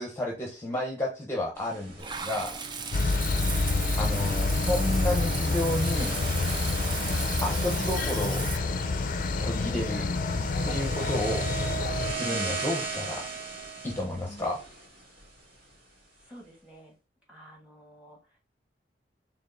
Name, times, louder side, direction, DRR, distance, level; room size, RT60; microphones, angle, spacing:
voice 1, 0.0-2.6 4.0-6.2 7.4-8.5 9.4-10.1 10.6-11.5 12.1-13.3 13.8-14.6, left 1 dB, 15° left, -1 dB, 0.8 m, -31 dB
sound 1, 1.5-15.7, right 4 dB, 60° right, 2.3 m, -38 dB
Water / Bathtub (filling or washing), 2.0-8.6, right 6 dB, 25° right, 0.4 m, -37 dB
sound 2, 2.9-12.1, left 3 dB, 50° left, 0.5 m, -28 dB
voice 2, 3.2-3.5 14.3-14.4 16.1-17.0 17.3-18.4, equal, 5° right, -1 dB, 1.8 m, -50 dB
4.4 x 3.6 x 2.6 m, 0.31 s
head